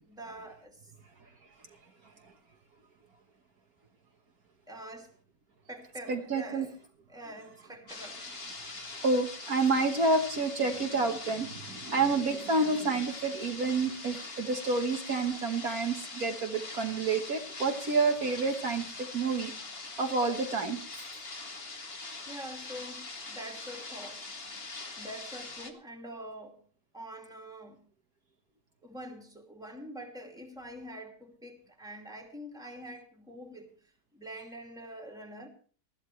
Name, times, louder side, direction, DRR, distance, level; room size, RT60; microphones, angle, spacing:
voice 1, 0.1-0.9 4.7-5.1 5.7-6.8 7.1-8.2 20.9-21.2 22.3-24.2 25.0-26.6 26.9-27.8 28.8-33.7 34.1-35.5, right 1 dB, ahead, 2 dB, 2.4 m, -45 dB
voice 2, 6.1-6.7 8.6-19.5 20.0-20.8, right 3 dB, 60° right, 4 dB, 1.8 m, -29 dB
sound 1, 7.9-25.7, left 3 dB, 35° left, 2.0 m, -43 dB
20.0 x 14.0 x 3.2 m, 0.42 s
omnidirectional pair, 1.8 m